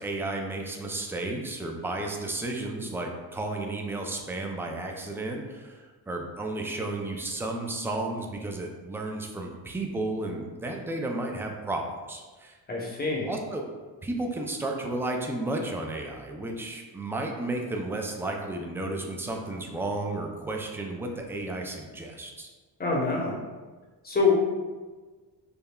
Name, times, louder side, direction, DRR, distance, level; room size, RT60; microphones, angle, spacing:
voice 1, 0.0-12.6 13.3-13.7 14.0-22.5, right 2 dB, 5° right, 2 dB, 0.3 m, -33 dB
voice 2, 12.7-13.3 22.8-23.4 24.0-24.3, left 4 dB, 20° left, -2 dB, 0.9 m, -25 dB
5.3 x 2.1 x 2.2 m, 1.3 s
cardioid pair, 80°, 44 cm